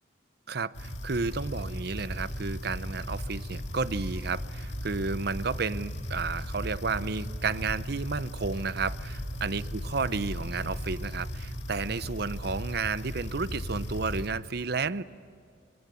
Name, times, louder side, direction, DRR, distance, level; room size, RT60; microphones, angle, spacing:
voice 1, 0.5-15.0, right 4 dB, 60° right, 15 dB, 0.7 m, -32 dB
sound 1, 0.7-14.3, equal, 65° left, 2.3 m, -36 dB
25.0 x 25.0 x 8.4 m, 2.3 s
head